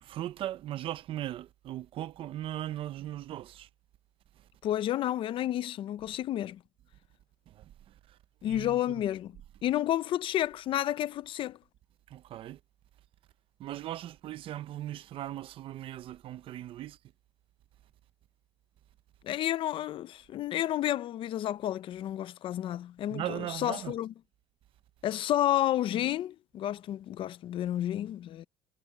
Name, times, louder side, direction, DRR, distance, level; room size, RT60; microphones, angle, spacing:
voice 1, 0.0-3.7 7.5-7.6 8.4-8.8 12.1-12.6 13.6-17.0 23.1-23.9, right 13 dB, 45° right, 0.7 m, -38 dB
voice 2, 4.6-6.6 8.4-11.6 19.2-24.1 25.0-28.5, left 12 dB, 45° left, 0.6 m, -31 dB
cardioid pair, 155°, 13 cm